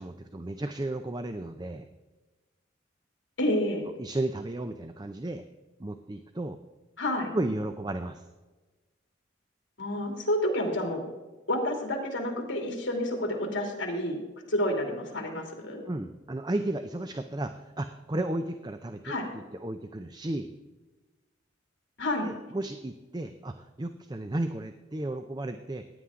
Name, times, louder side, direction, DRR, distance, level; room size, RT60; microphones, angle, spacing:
voice 1, 0.0-1.9 4.0-5.4 5.8-6.6 7.3-8.3 15.9-20.5 22.2-25.8, right 1 dB, 20° right, 8 dB, 0.5 m, -34 dB
voice 2, 3.4-3.8 7.0-7.3 9.8-11.0 11.5-14.2 14.5-15.8 19.0-19.3 22.0-22.3, left 1 dB, 75° left, 2 dB, 2.7 m, -29 dB
15.5 x 9.6 x 3.7 m, 1.2 s
head